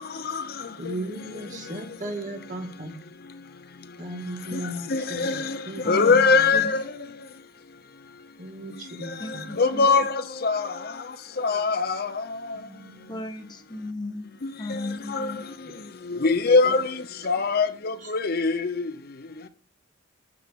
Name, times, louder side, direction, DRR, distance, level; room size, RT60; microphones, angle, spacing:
voice 1, 0.1-0.5 0.9-1.0 4.5-6.9 9.3-11.0 11.4-12.6 14.4-15.4 16.1-18.9, left 4 dB, 45° left, 0.6 m, -23 dB
voice 2, 0.8-3.0 4.0-6.6 8.4-9.5 12.5-13.2 16.6-16.8 18.0-18.1, right 1 dB, 35° right, 1.8 m, -37 dB
voice 3, 5.8-6.8 9.2-9.9 13.1-15.5, left 2 dB, 20° left, 1.0 m, -35 dB
10.0 x 7.6 x 3.6 m
head